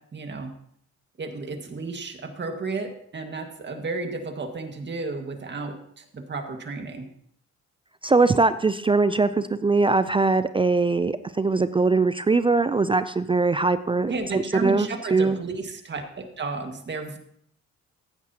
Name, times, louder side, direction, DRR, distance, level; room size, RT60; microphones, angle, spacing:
voice 1, 0.1-0.5 1.2-7.1 14.1-17.2, right 3 dB, 35° right, 5 dB, 1.8 m, -33 dB
voice 2, 8.0-15.4, right 3 dB, 20° right, 13 dB, 0.4 m, -21 dB
14.5 x 9.6 x 2.9 m, 0.67 s
cardioid pair, 90°, 30 cm